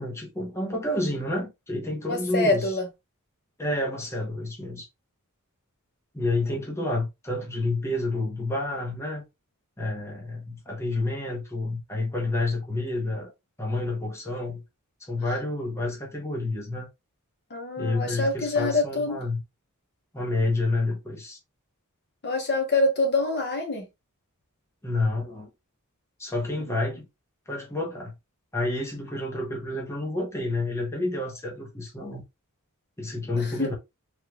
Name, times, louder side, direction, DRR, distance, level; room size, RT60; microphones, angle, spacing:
voice 1, 0.0-2.8 3.6-4.9 6.1-9.2 9.8-13.3 13.6-14.6 15.0-16.9 17.8-19.4 20.1-21.4 24.8-25.5 26.2-27.1 27.5-28.1 28.5-32.2 33.0-33.7, left 2 dB, 10° left, 0.8 m, -29 dB
voice 2, 2.1-2.9 17.5-19.2 22.2-23.9 33.4-33.7, left 2 dB, 50° left, 1.0 m, -25 dB
3.4 x 2.4 x 2.9 m
head